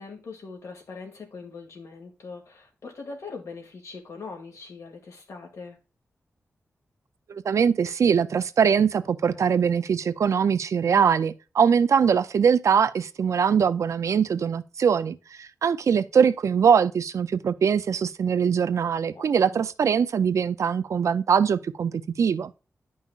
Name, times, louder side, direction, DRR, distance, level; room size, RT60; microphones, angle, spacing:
voice 1, 0.0-5.8 9.3-9.6 19.1-19.7, left 4 dB, 75° left, 2.1 m, -41 dB
voice 2, 7.3-22.5, right 7 dB, 70° right, 0.5 m, -22 dB
10.5 x 5.4 x 2.4 m
wide cardioid pair, 160°, 5 cm